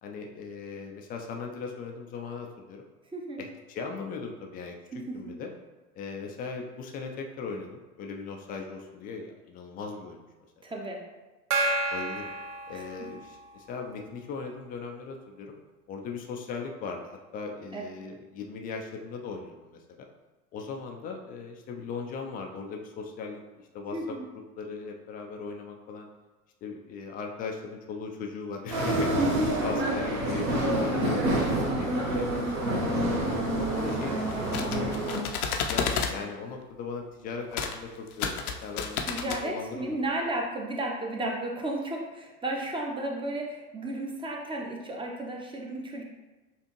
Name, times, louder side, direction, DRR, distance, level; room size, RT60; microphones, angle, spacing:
voice 1, 0.0-2.8 3.4-4.8 5.1-5.5 5.9-10.3 11.9-12.3 12.7-15.6 15.9-20.1 20.5-24.2 24.6-26.1 26.6-31.4 31.8-33.0 33.5-35.2 35.6-40.0, left 4 dB, 20° left, 2 dB, 0.3 m, -38 dB
voice 2, 3.1-3.4 4.9-5.2 10.6-11.0 12.7-13.1 17.7-17.8 23.9-24.2 29.2-29.6 39.0-46.0, right 1 dB, 10° right, 0 dB, 0.7 m, -33 dB
Gong, 11.5-13.5, right 2 dB, 75° right, 0.7 m, -30 dB
sound 1, 28.7-35.2, right 1 dB, 50° right, 1.2 m, -28 dB
sound 2, 34.3-36.2 37.5-37.8 38.1-39.4, left 6 dB, 65° left, 0.7 m, -31 dB
6.8 x 2.5 x 3.0 m, 1.2 s
figure-of-eight pair, 80°, 46 cm